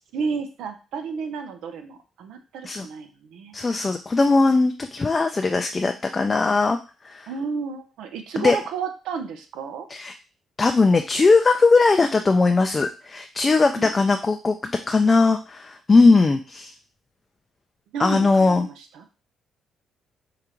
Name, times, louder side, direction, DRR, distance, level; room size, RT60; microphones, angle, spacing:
voice 1, 0.1-3.5 7.3-9.9 13.8-13.9 17.9-19.0, right 5 dB, 85° right, 7 dB, 0.6 m, -32 dB
voice 2, 3.5-6.8 7.0-7.3 8.4-8.6 9.9-10.1 10.6-16.7 18.0-18.7, left 3 dB, 30° left, 5 dB, 0.3 m, -19 dB
4.7 x 2.5 x 3.0 m, 0.32 s
cardioid pair, 90°, 0 cm